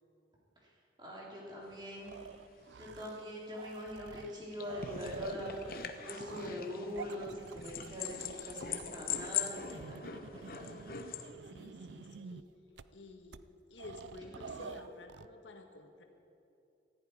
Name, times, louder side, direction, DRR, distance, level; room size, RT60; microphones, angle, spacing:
voice 1, 1.0-2.1 2.7-5.5 6.0-10.0 10.3-10.7, equal, 25° right, -4 dB, 3.6 m, -43 dB
sound 1, 1.7-1.8 2.1-2.2 2.4-11.3, left 8 dB, 50° left, 1.0 m, -41 dB
sound 2, 2.1-3.3 3.5-12.4 12.8-12.9 13.3-13.4 13.8-15.3, right 5 dB, 80° right, 0.5 m, -48 dB
voice 2, 11.4-12.5 12.9-16.0, left 3 dB, 90° left, 4 dB, 1.6 m, -52 dB
19.0 x 14.5 x 4.9 m, 2.7 s
head